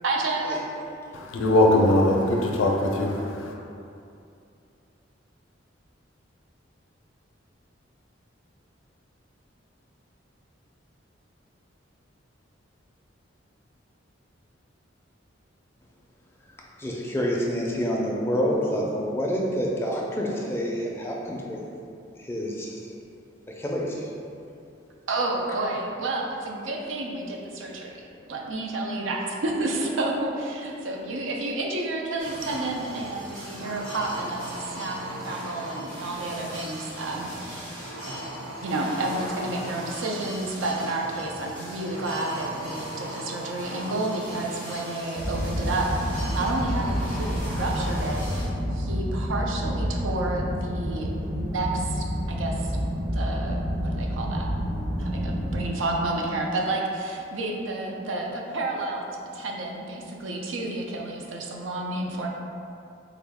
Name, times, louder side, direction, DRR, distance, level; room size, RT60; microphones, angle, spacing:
voice 1, 0.0-0.6 25.1-37.8 38.6-45.9 46.3-48.2 48.7-51.1 51.4-54.5 54.9-62.3, right 2 dB, 85° right, 0 dB, 0.5 m, -30 dB
voice 2, 1.4-3.5, left 1 dB, 90° left, 1 dB, 0.4 m, -21 dB
voice 3, 16.8-21.6 22.1-22.9 23.6-24.1, equal, 10° left, -3 dB, 0.4 m, -28 dB
sound 1, 32.2-48.5, equal, 65° right, 1.5 m, -38 dB
sound 2, 45.2-55.7, equal, 45° right, 0.9 m, -29 dB
3.6 x 2.2 x 3.4 m, 2.6 s
head